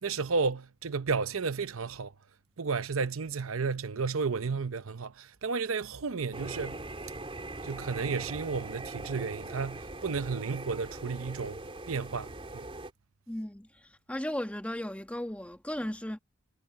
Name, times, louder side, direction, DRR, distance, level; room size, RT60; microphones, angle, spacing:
voice 1, 0.0-2.1 2.6-6.8 7.6-11.6 11.9-12.7, right 4 dB, 70° right, 0.7 m, -32 dB
sound 1, 6.3-12.9, right 2 dB, 25° right, 3.3 m, -41 dB
voice 2, 13.3-13.7 14.1-16.2, left 1 dB, 5° left, 1.4 m, -35 dB
head